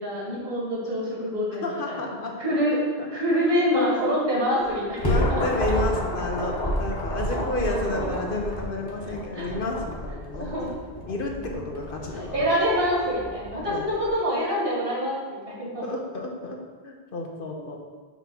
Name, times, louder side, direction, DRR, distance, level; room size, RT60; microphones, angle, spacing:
voice 1, 0.0-2.1 2.4-2.8 3.1-5.7 6.4-6.7 7.6-8.1 9.3-9.5 10.4-10.7 12.1-15.8, equal, 65° right, -5 dB, 2.1 m, -26 dB
voice 2, 1.6-2.5 3.0-3.4 3.7-3.9 5.0-10.7 11.1-12.4 13.6-13.8 15.8-17.8, left 2 dB, 60° left, 1 dB, 1.0 m, -31 dB
sound 1, 4.6-14.1, equal, 25° left, 1.1 m, -30 dB
6.0 x 3.5 x 5.7 m, 1.4 s
omnidirectional pair, 1.0 m